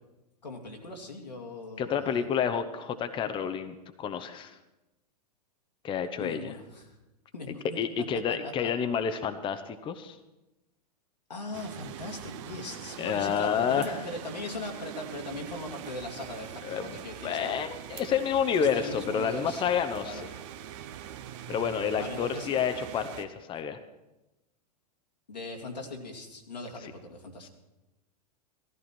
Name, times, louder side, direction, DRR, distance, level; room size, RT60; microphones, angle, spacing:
voice 1, 0.4-2.3 6.2-6.9 7.3-7.6 8.4-8.7 11.3-17.6 18.6-20.2 21.9-22.5 25.3-27.5, left 2 dB, 90° left, 1 dB, 2.5 m, -40 dB
voice 2, 1.8-4.6 5.8-6.6 7.5-10.2 13.0-14.0 16.6-16.9 17.2-20.3 21.5-23.8 26.8-26.9 27.4-27.5, left 7 dB, 25° left, 9 dB, 0.9 m, -29 dB
sound 1, 11.5-23.2, right 10 dB, 50° right, 1.0 m, -43 dB
16.5 x 14.0 x 4.4 m, 1.0 s
hypercardioid pair, 105°, 21 cm